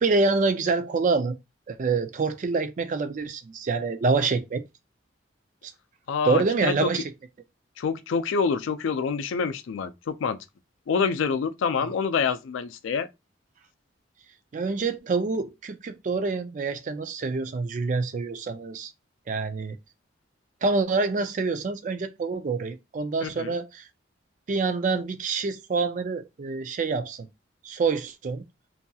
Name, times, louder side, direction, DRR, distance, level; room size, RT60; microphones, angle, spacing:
voice 1, 0.0-1.4 1.7-4.6 5.6-5.7 6.2-7.1 14.5-18.9 19.3-19.8 20.6-23.9 24.5-27.3 27.6-28.4, right 4 dB, 40° right, 0.3 m, -26 dB
voice 2, 6.1-6.9 7.8-10.4 10.9-13.1 23.2-23.6, left 5 dB, 80° left, 0.4 m, -26 dB
2.7 x 2.6 x 2.3 m
head